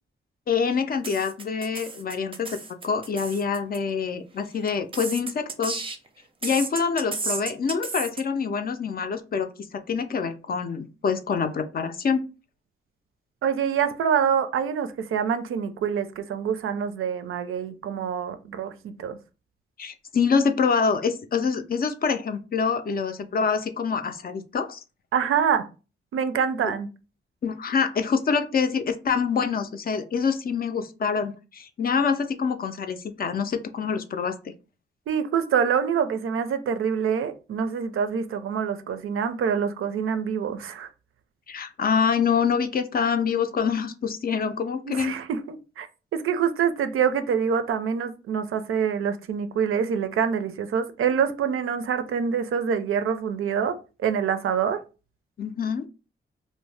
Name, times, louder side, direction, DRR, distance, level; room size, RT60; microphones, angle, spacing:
voice 1, 0.5-2.6 2.8-5.8 6.4-12.2 19.8-24.8 26.6-26.7 27.4-34.4 41.5-45.1 55.4-55.9, left 6 dB, 45° left, 0.4 m, -26 dB
sound 1, 1.0-3.8 4.7-6.1 6.4-8.2, right 3 dB, 25° right, 0.5 m, -33 dB
voice 2, 13.4-19.2 25.1-25.7 26.1-26.9 35.1-40.9 44.9-45.9 46.1-54.8, right 7 dB, 80° right, 0.4 m, -26 dB
2.6 x 2.0 x 3.2 m
wide cardioid pair, 100°, 21 cm